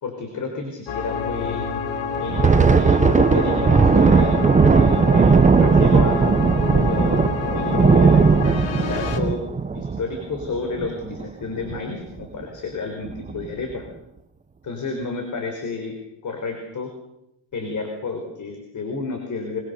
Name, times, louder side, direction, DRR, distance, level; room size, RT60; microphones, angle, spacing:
voice 1, 0.0-1.7 2.2-4.3 4.7-6.2 6.7-8.3 8.8-9.4 9.7-13.9 14.6-15.9 16.2-16.9 17.5-19.6, left 4 dB, 40° left, 4 dB, 4.5 m, -30 dB
sound 1, 0.9-9.2, left 5 dB, 75° left, 3.2 m, -28 dB
Thunder, 2.2-11.2 11.6-11.8 12.2-12.4 13.0-13.5, right 5 dB, 15° right, 0.9 m, -17 dB
24.5 x 24.0 x 6.9 m, 0.85 s
cardioid pair, 140°, 46 cm